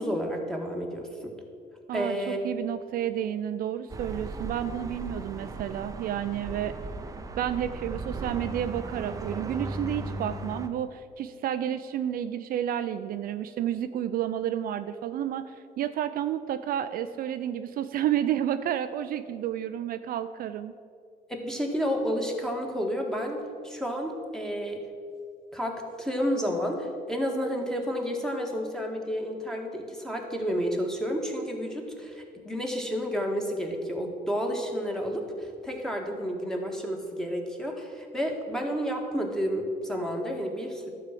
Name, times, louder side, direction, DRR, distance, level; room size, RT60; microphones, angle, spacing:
voice 1, 0.0-1.3 1.9-2.4 21.3-24.8 25.5-40.9, equal, 5° left, 1 dB, 1.6 m, -31 dB
voice 2, 1.9-6.7 7.4-20.7, right 10 dB, 60° right, 10 dB, 0.4 m, -31 dB
sound 1, 3.9-10.7, right 2 dB, 20° right, 0.7 m, -37 dB
11.5 x 4.7 x 7.5 m, 2.3 s
cardioid pair, 110°, 17 cm